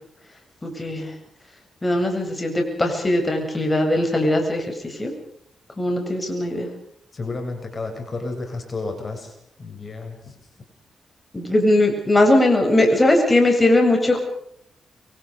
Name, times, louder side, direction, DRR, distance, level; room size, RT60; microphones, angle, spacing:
voice 1, 0.6-1.1 1.8-5.1 5.8-6.7 11.3-14.2, left 1 dB, 20° left, 3 dB, 7.8 m, -19 dB
voice 2, 7.1-9.3 9.6-10.3, left 3 dB, 40° left, 4 dB, 7.7 m, -31 dB
28.5 x 25.5 x 5.2 m, 0.70 s
cardioid pair, 85°, 0 cm